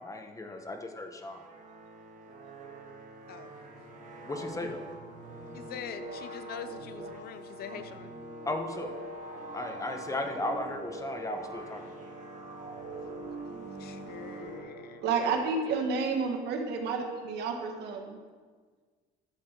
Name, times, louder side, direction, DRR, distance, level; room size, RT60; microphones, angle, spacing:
voice 1, 0.0-1.4 4.3-4.8 8.4-8.9 9.5-11.8, left 2 dB, 20° left, 5 dB, 1.2 m, -35 dB
sound 1, 1.2-15.3, right 2 dB, 50° right, 1.8 m, -43 dB
voice 2, 5.7-8.1 9.4-9.5 13.8-15.0, left 7 dB, 65° left, 11 dB, 0.7 m, -43 dB
voice 3, 15.0-18.2, right 4 dB, 80° right, 3 dB, 1.6 m, -30 dB
12.0 x 7.4 x 4.6 m, 1.5 s
cardioid pair, 110°, 17 cm